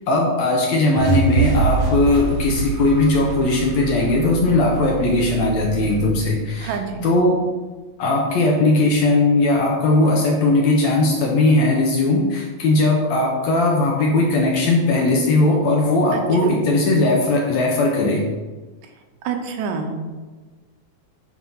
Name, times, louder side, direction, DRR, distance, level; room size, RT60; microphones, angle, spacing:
voice 1, 0.1-6.7 7.0-7.4 8.0-18.2, left 2 dB, 70° left, -1 dB, 1.8 m, -18 dB
sound 1, 1.0-7.1, right 5 dB, 70° right, 1.8 m, -25 dB
voice 2, 6.6-7.1 16.1-16.6 19.2-19.9, right 5 dB, 85° right, 5 dB, 2.3 m, -28 dB
7.4 x 3.6 x 5.5 m, 1.3 s
omnidirectional pair, 3.9 m